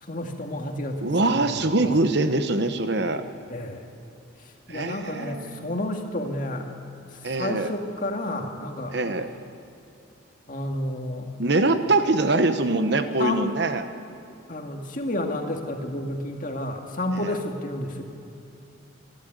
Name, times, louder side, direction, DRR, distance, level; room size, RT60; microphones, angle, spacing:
voice 1, 0.0-1.7 3.5-3.9 4.4-6.7 7.1-9.0 10.5-11.3 13.2-13.5 14.5-18.0, left 1 dB, 40° left, 2 dB, 2.1 m, -31 dB
voice 2, 1.0-3.2 4.7-5.7 7.2-7.7 8.9-9.3 11.4-13.8 17.2-17.3, right 2 dB, 55° right, 9 dB, 1.0 m, -23 dB
27.0 x 12.0 x 9.3 m, 2.8 s
head